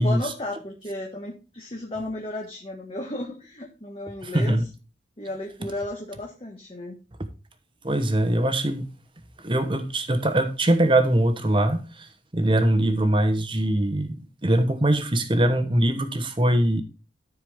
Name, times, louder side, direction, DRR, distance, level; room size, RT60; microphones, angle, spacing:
voice 1, 0.0-4.6 5.2-7.0, left 1 dB, 30° left, 1.4 m, -34 dB
voice 2, 4.2-4.7 7.8-8.9 9.4-12.1 12.3-14.2 14.4-16.8, right 1 dB, 30° right, 1.1 m, -22 dB
13.5 x 4.7 x 3.6 m
head